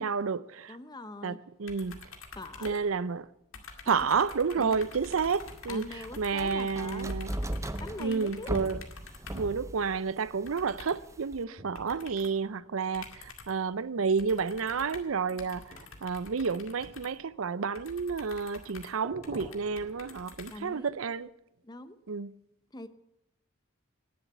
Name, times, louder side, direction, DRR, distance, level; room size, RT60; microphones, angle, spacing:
voice 1, 0.0-0.8 1.2-2.0 2.6-3.3 3.9-5.9 6.2-7.3 8.0-8.8 9.3-21.3 22.1-22.3, right 5 dB, 90° right, 0.6 m, -30 dB
voice 2, 0.7-1.4 2.3-2.8 3.8-4.1 4.6-4.9 5.7-7.1 7.8-8.5 11.5-11.8 20.5-21.0 21.6-22.0 22.7-22.9, left 2 dB, 20° left, 0.8 m, -43 dB
sound 1, 1.7-3.3 3.5-9.6 10.5-11.1 11.8-12.4 12.9-13.7 14.2-21.0, left 4 dB, 75° left, 2.2 m, -48 dB
sound 2, 4.8-11.4, right 1 dB, 15° right, 0.7 m, -39 dB
sound 3, 11.6-13.7 14.7-15.2 15.7-18.3 19.0-20.2, right 1 dB, 45° right, 3.9 m, -50 dB
19.0 x 7.3 x 8.2 m
head